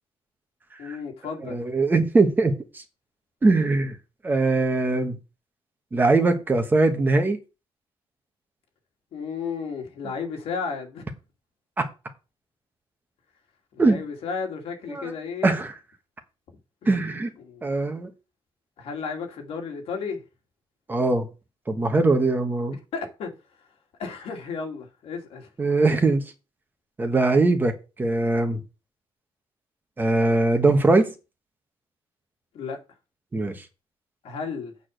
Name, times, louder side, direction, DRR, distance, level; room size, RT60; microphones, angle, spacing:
voice 1, 0.8-1.6 9.1-11.0 13.7-15.5 16.8-16.9 17.4-17.8 18.8-20.2 22.9-23.3 24.0-25.5 32.5-32.8 34.2-34.7, left 5 dB, 85° left, 2.5 m, -33 dB
voice 2, 1.4-2.8 3.4-4.0 4.2-5.2 5.9-7.4 11.8-11.9 13.8-14.0 14.9-15.1 15.4-15.7 16.9-17.3 17.6-18.1 20.9-21.3 21.7-22.7 25.6-26.2 27.0-27.7 28.0-28.6 30.0-31.1 33.3-33.6, right 3 dB, 20° right, 1.3 m, -21 dB
8.4 x 4.8 x 6.5 m
cardioid pair, 165°, 10 cm